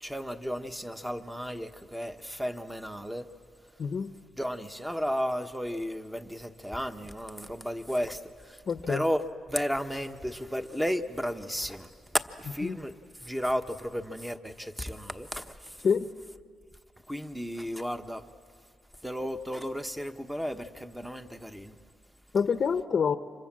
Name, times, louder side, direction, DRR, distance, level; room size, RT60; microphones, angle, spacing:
voice 1, 0.0-3.3 4.4-12.9 13.2-15.8 17.1-18.2 19.0-21.8, equal, 5° right, 1.2 m, -33 dB
voice 2, 3.8-4.1 8.7-9.0 12.6-12.8 15.8-16.1 22.3-23.2, left 6 dB, 45° left, 0.8 m, -27 dB
29.5 x 26.0 x 7.5 m
cardioid pair, 90°, 0 cm